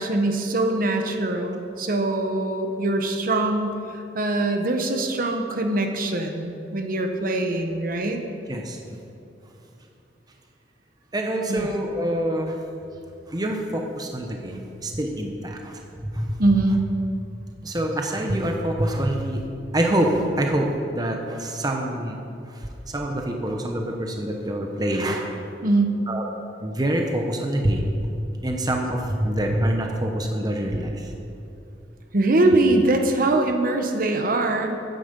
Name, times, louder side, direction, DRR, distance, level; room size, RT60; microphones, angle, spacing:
voice 1, 0.0-8.2 11.5-11.7 16.4-16.8 25.6-26.0 32.1-34.7, right 2 dB, 55° right, 4 dB, 1.1 m, -23 dB
voice 2, 8.5-9.0 11.1-12.6 13.3-16.4 17.6-19.4 19.7-22.2 22.5-25.4 26.1-26.3 26.6-27.9 28.4-31.1, right 1 dB, 20° right, 2 dB, 1.0 m, -26 dB
14.5 x 9.3 x 5.4 m, 2.6 s
head